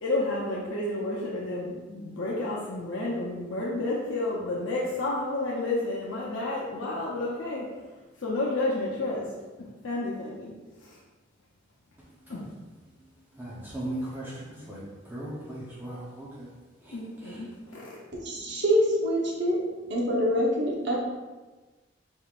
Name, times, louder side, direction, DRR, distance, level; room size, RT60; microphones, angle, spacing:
voice 1, 0.0-7.6 8.2-9.3 9.8-10.5 10.8-11.0 12.3-12.4 16.9-17.9, left 2 dB, 90° left, -5 dB, 0.7 m, -31 dB
voice 2, 13.4-16.5 16.8-17.0 17.2-17.4, right 1 dB, 10° right, -7 dB, 0.7 m, -38 dB
voice 3, 18.2-19.6 19.9-20.9, equal, 60° right, -3 dB, 0.9 m, -25 dB
4.6 x 3.6 x 2.4 m, 1.2 s
head